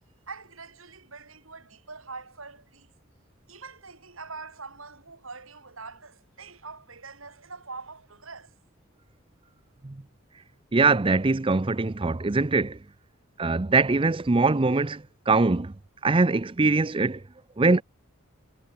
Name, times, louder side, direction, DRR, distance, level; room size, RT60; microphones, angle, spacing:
voice 1, 0.3-2.9 3.5-8.6, right 4 dB, 75° right, 7.7 m, -43 dB
voice 2, 10.7-12.8 13.4-15.7 16.0-17.2 17.6-17.8, right 3 dB, 25° right, 0.6 m, -22 dB
head